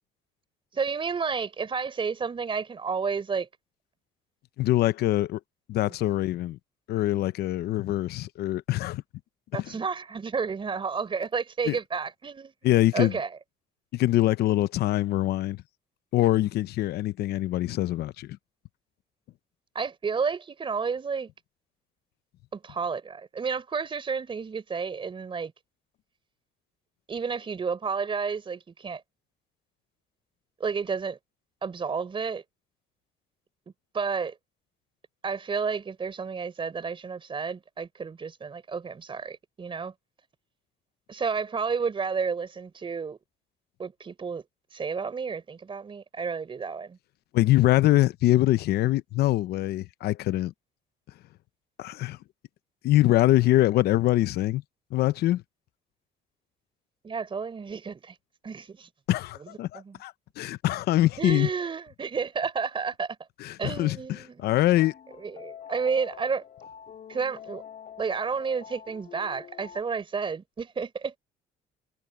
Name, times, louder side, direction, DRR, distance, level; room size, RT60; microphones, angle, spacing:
voice 1, 0.7-3.5 9.5-12.5 12.9-13.3 19.7-21.3 22.5-25.5 27.1-29.0 30.6-31.2 31.6-32.4 33.9-34.4 35.2-39.9 41.1-43.2 43.8-44.4 44.7-47.0 57.0-58.1 58.4-58.9 59.4-59.5 59.7-60.0 61.2-63.2 63.6-64.5 65.2-66.4 67.1-67.6 68.0-71.2, right 5 dB, 30° right, 4.0 m, -31 dB
voice 2, 4.6-5.4 5.7-6.6 6.9-9.0 9.5-9.7 11.7-11.8 12.6-13.2 13.9-15.6 16.1-18.4 47.3-50.5 51.8-52.2 52.8-54.6 54.9-55.4 59.1-61.5 63.4-64.9, left 15 dB, 70° left, 0.8 m, -24 dB
sound 1, 64.8-69.8, left 8 dB, 50° left, 3.2 m, -46 dB
cardioid pair, 110°, 17 cm